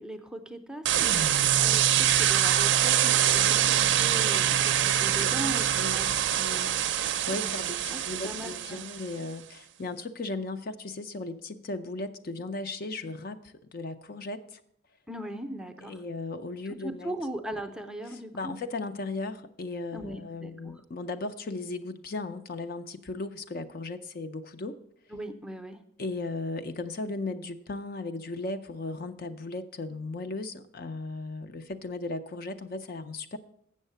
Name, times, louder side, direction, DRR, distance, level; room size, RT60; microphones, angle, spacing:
voice 1, 0.0-6.1 7.3-7.5 7.9-8.8 15.1-16.0 16.7-18.5 19.9-20.7 25.1-25.8, right 1 dB, 5° right, 5 dB, 0.5 m, -39 dB
sound 1, 0.9-9.1, right 10 dB, 60° right, 0.5 m, -24 dB
voice 2, 5.2-14.6 15.8-17.1 18.1-24.8 26.0-33.4, left 2 dB, 45° left, 9 dB, 0.4 m, -36 dB
8.0 x 6.4 x 6.6 m, 0.72 s
head